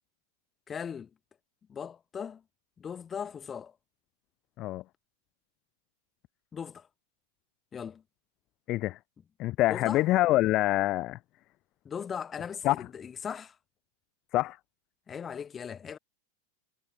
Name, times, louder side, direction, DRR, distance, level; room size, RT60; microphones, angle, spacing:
voice 1, 0.7-1.1 1.7-2.4 2.8-3.8 6.5-6.9 7.7-8.0 9.7-10.1 11.8-13.6 15.1-16.0, left 7 dB, 20° left, 2.9 m, -38 dB
voice 2, 8.7-9.0 9.4-11.2 12.6-12.8 14.3-14.6, left 16 dB, 35° left, 0.6 m, -25 dB
figure-of-eight pair, 90°, 0 cm